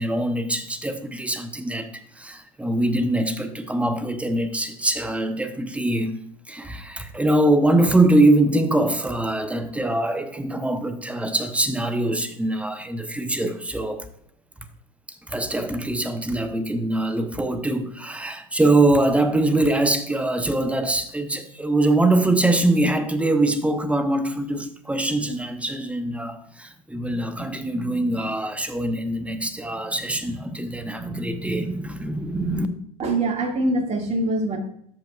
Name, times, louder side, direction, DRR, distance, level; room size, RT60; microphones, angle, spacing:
voice 1, 0.0-6.1 6.5-14.1 15.3-32.7, right 2 dB, 5° right, 0.9 m, -23 dB
voice 2, 33.0-34.6, right 2 dB, 35° right, 2.0 m, -23 dB
13.0 x 5.3 x 2.3 m
hypercardioid pair, 80°, 19 cm